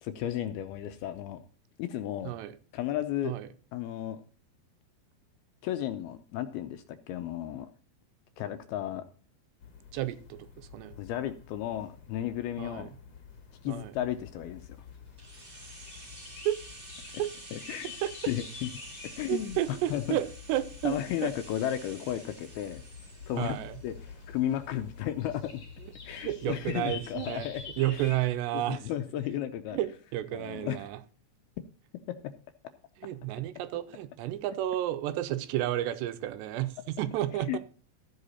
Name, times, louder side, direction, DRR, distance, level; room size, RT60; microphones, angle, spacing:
voice 1, 0.0-1.4 1.8-2.3 2.7-3.3 3.7-4.2 5.6-7.7 8.4-9.0 11.0-12.9 13.6-14.8 17.5-17.9 18.3-18.7 19.2-19.6 19.9-20.2 20.8-22.8 23.3-23.6 23.8-23.9 24.3-25.6 26.0-27.6 28.5-29.8 30.3-30.8 32.1-32.2 37.5-37.6, left 11 dB, 80° left, 9 dB, 2.3 m, -33 dB
voice 2, 2.2-2.6 3.2-3.5 9.9-11.0 12.6-12.9 13.7-13.9 16.5-16.6 17.2-17.3 18.0-18.3 19.3-21.0 21.2-21.3 23.4-23.8 25.8-27.5 27.8-28.9 29.7-31.0 33.0-37.6, right 13 dB, 85° right, 11 dB, 2.9 m, -32 dB
sound 1, 9.6-28.3, left 5 dB, 45° left, 1.5 m, -48 dB
sound 2, 15.2-25.0 25.3-25.4, right 2 dB, 55° right, 0.6 m, -49 dB
13.5 x 8.0 x 4.2 m, 0.39 s
omnidirectional pair, 5.0 m